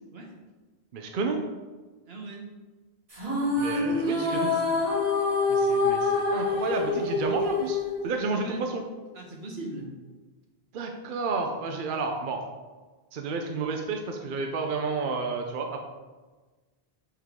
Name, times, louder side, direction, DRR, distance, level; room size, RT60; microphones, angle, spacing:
voice 1, 0.9-1.4 3.6-4.5 5.5-8.8 10.7-12.4 13.1-15.8, right 4 dB, 60° right, 3 dB, 0.7 m, -31 dB
voice 2, 2.1-2.5 3.7-4.7 8.3-8.7 9.1-9.9, right 1 dB, 75° right, 1 dB, 1.3 m, -40 dB
sound 1, 3.1-8.6, left 3 dB, 35° right, 1.7 m, -26 dB
7.2 x 3.8 x 3.6 m, 1.3 s
omnidirectional pair, 1.1 m